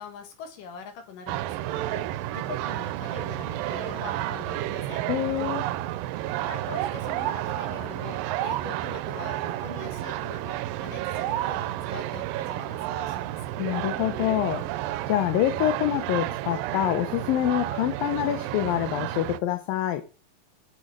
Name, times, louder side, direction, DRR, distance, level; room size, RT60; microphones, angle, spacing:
voice 1, 0.0-5.1 6.4-13.5, left 6 dB, 70° left, 3.4 m, -43 dB
sound 1, 1.3-19.4, right 14 dB, 85° right, 2.3 m, -31 dB
voice 2, 5.1-5.7 13.6-14.7 15.1-20.0, left 12 dB, 90° left, 2.6 m, -26 dB
7.9 x 6.6 x 7.3 m
omnidirectional pair, 3.9 m